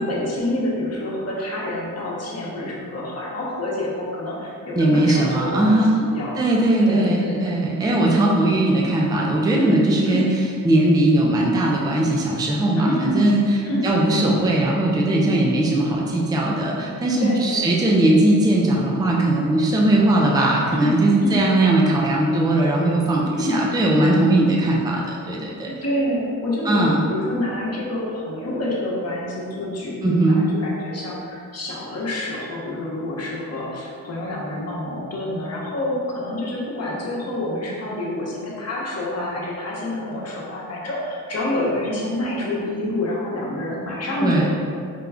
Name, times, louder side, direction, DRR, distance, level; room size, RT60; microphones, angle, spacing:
voice 1, 0.0-6.4 6.8-7.4 9.5-9.8 10.0-10.2 12.8-13.2 13.6-13.9 17.2-17.7 20.7-20.9 21.2-21.4 23.4-23.6 25.7-44.5, left 1 dB, 50° left, -5 dB, 1.0 m, -27 dB
voice 2, 4.8-5.9 6.4-25.7 26.6-27.1 30.0-30.4 44.2-44.5, right 1 dB, 10° right, -2 dB, 0.5 m, -19 dB
5.2 x 2.3 x 3.4 m, 2.3 s
cardioid pair, 95°, 33 cm